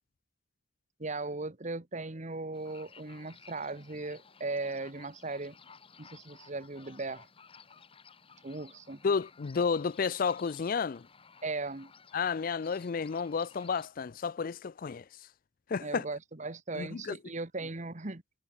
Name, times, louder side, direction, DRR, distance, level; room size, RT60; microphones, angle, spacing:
voice 1, 1.0-5.6 6.0-7.3 8.4-9.0 11.4-11.9 15.8-18.2, right 3 dB, 40° right, 1.5 m, -38 dB
sound 1, 2.5-13.9, left 6 dB, 30° left, 1.3 m, -56 dB
voice 2, 9.0-11.1 12.1-15.1 15.7-16.0 16.7-17.2, left 5 dB, 50° left, 0.4 m, -31 dB
head